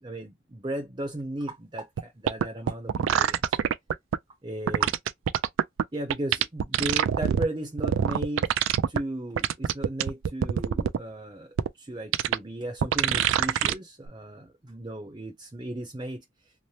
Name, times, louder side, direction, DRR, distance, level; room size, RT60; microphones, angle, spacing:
voice 1, 0.0-3.6 4.4-4.9 5.9-8.5 8.9-16.2, right 1 dB, 20° right, 0.5 m, -35 dB
sound 1, 2.0-2.1 2.3-4.2 4.7-5.8 6.1-7.5 7.8-9.0 9.4-11.0 11.6-11.7 12.1-12.4 12.8-13.7 14.1-14.2, right 8 dB, 70° right, 0.3 m, -24 dB
2.8 x 2.0 x 3.1 m
head